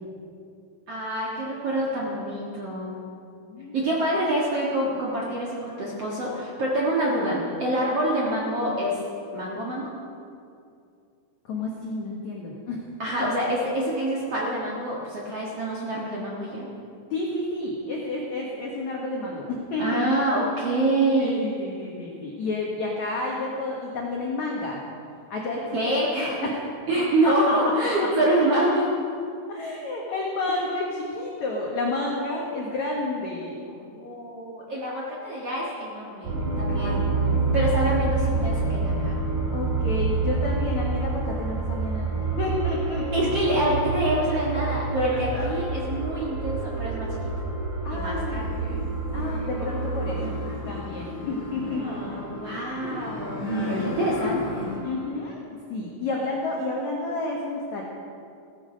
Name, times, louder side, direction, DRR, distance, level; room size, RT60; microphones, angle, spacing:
voice 1, 0.9-3.0 3.7-9.0 9.3-9.9 13.0-16.7 19.8-21.4 25.7-26.5 26.9-28.9 30.5-30.6 33.7-37.0 37.5-39.2 43.1-47.2 47.9-48.5 51.5-53.4 53.8-54.7, right 1 dB, 75° right, -4 dB, 1.4 m, -26 dB
voice 2, 3.4-3.7 11.5-12.8 13.2-13.3 17.1-20.0 21.2-24.8 25.3-25.8 26.2-26.6 27.2-27.5 29.5-33.7 36.8-37.4 39.5-43.2 44.9-45.6 47.8-48.9 49.1-50.4 50.6-53.0 53.4-54.1 54.8-55.4 55.7-57.8, left 2 dB, 75° left, -2 dB, 1.6 m, -31 dB
sound 1, 36.2-55.1, right 3 dB, 45° right, 3.6 m, -28 dB
sound 2, 48.4-54.8, left 2 dB, 55° left, 4.2 m, -34 dB
15.5 x 14.0 x 5.3 m, 2.5 s
omnidirectional pair, 5.7 m